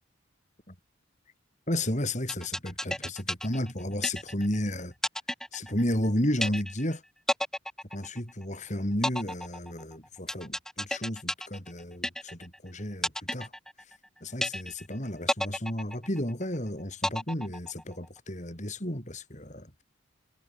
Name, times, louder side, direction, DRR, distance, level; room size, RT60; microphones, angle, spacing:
voice 1, 1.7-4.9 5.5-7.0 7.9-13.5 14.2-19.7, left 1 dB, 35° left, 6.2 m, -32 dB
sound 1, 2.3-4.6 5.0-6.1 6.4-6.9 7.3-8.5 9.0-12.6 13.0-14.1 14.4-14.9 15.3-16.5 17.0-18.0, left 1 dB, 5° left, 4.4 m, -32 dB
head